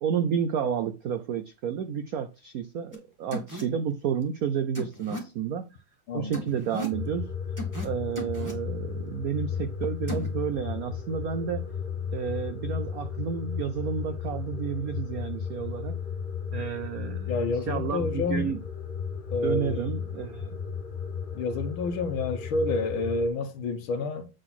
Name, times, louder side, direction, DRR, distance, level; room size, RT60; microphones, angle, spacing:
voice 1, 0.0-5.7 6.1-7.3 7.8-11.7 12.1-16.0 16.5-17.4 17.7-18.6 19.4-20.6, right 7 dB, 80° right, 0.8 m, -31 dB
sound 1, 2.9-3.0 3.3-3.6 4.7-5.2 6.3-7.0 7.6-7.9 8.1-8.5 10.1-10.3, right 1 dB, 10° right, 1.9 m, -35 dB
voice 2, 6.1-6.4 17.3-18.6 19.3-19.9 21.4-24.3, left 3 dB, 75° left, 1.6 m, -29 dB
sound 2, 6.9-23.3, left 6 dB, 35° left, 0.8 m, -34 dB
8.0 x 3.9 x 5.9 m
omnidirectional pair, 2.3 m